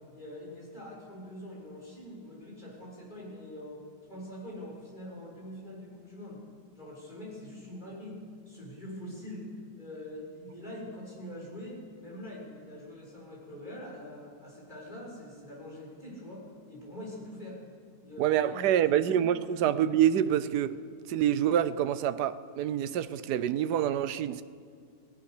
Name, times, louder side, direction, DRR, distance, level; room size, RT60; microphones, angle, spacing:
voice 1, 0.1-3.8 4.1-6.4 6.8-8.2 8.5-9.5 9.8-17.6 18.0-19.2, left 1 dB, 25° left, 7.1 m, -44 dB
voice 2, 18.2-20.8 21.1-24.4, right 10 dB, 75° right, 1.3 m, -26 dB
27.5 x 18.0 x 6.7 m
omnidirectional pair, 1.8 m